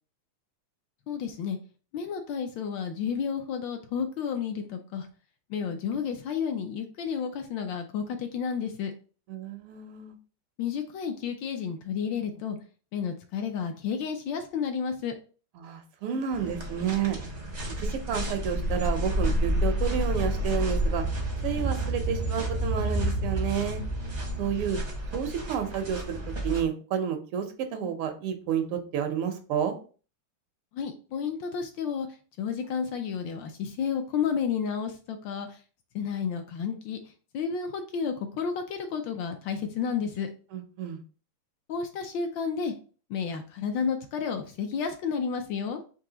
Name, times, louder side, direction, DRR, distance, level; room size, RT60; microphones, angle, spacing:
voice 1, 1.1-1.6 1.9-5.1 5.5-8.9 10.6-12.6 12.9-15.1 30.7-32.1 32.4-35.5 35.9-37.0 37.3-40.3 41.7-42.7 43.1-45.8, left 6 dB, 75° left, 5 dB, 1.2 m, -31 dB
voice 2, 9.3-10.2 15.6-17.2 17.8-21.1 21.4-23.8 24.4-24.8 25.1-26.2 26.4-27.5 27.7-29.8 40.5-41.0, right 8 dB, 90° right, 6 dB, 1.7 m, -30 dB
sound 1, 16.3-26.6, equal, 45° right, 0.5 m, -30 dB
4.7 x 2.8 x 3.8 m, 0.38 s
omnidirectional pair, 2.4 m